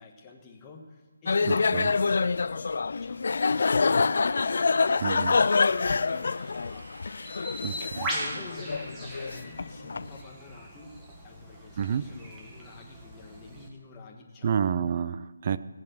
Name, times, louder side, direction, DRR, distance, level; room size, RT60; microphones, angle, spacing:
voice 1, 0.0-6.9 8.1-14.7, left 3 dB, 15° left, 0 dB, 1.5 m, -48 dB
sound 1, 1.3-10.1, left 4 dB, 65° left, 0.3 m, -26 dB
sound 2, 3.4-9.1, right 1 dB, 80° right, 3.0 m, -52 dB
voice 2, 5.0-5.4 7.6-8.1 11.8-12.0 14.4-15.6, right 7 dB, 35° right, 15 dB, 0.5 m, -29 dB
Bird, 7.3-13.7, right 1 dB, 15° right, 1.6 m, -39 dB
17.5 x 7.5 x 6.2 m, 1.4 s
figure-of-eight pair, 165°, 0 cm